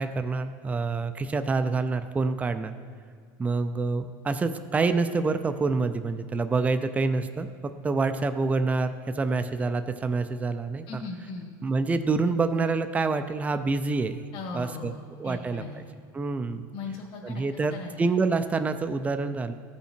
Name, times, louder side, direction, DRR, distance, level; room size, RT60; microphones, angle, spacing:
voice 1, 0.0-2.7 3.4-7.5 7.8-11.0 11.6-14.2 14.5-14.9 15.2-15.8 16.1-16.6 17.2-19.5, right 4 dB, 15° right, 9 dB, 0.4 m, -27 dB
voice 2, 10.9-11.5 14.3-15.8 16.7-17.4 17.7-17.9, left 4 dB, 50° left, -2 dB, 1.7 m, -38 dB
14.5 x 5.6 x 4.4 m, 2.2 s
supercardioid pair, 130°, 11 cm